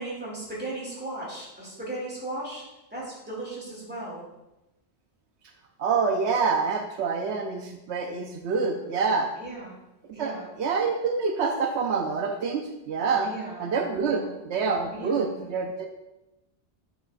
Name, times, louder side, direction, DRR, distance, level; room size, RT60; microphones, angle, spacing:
voice 1, 0.0-2.6 2.9-4.2 9.4-9.7 10.1-10.5 13.2-13.7 14.0-14.4 14.9-15.4, right 2 dB, 10° right, -6 dB, 2.5 m, -36 dB
voice 2, 5.8-9.3 10.2-13.3 13.6-15.9, right 5 dB, 80° right, 4 dB, 0.9 m, -27 dB
9.3 x 6.1 x 2.5 m, 0.95 s
omnidirectional pair, 1.2 m